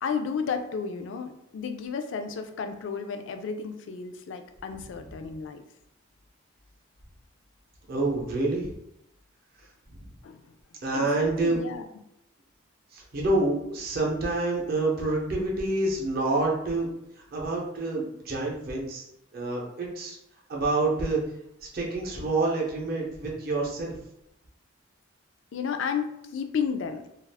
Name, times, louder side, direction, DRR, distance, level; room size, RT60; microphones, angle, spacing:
voice 1, 0.0-5.6 10.2-10.4 10.9-11.9 25.5-27.2, left 6 dB, 65° left, 7 dB, 0.3 m, -32 dB
voice 2, 7.9-8.7 10.8-11.6 12.9-16.9 17.3-19.1 19.3-20.2 20.5-21.2 21.7-23.9, right 2 dB, 45° right, -2 dB, 0.6 m, -27 dB
2.3 x 2.3 x 3.3 m, 0.83 s
head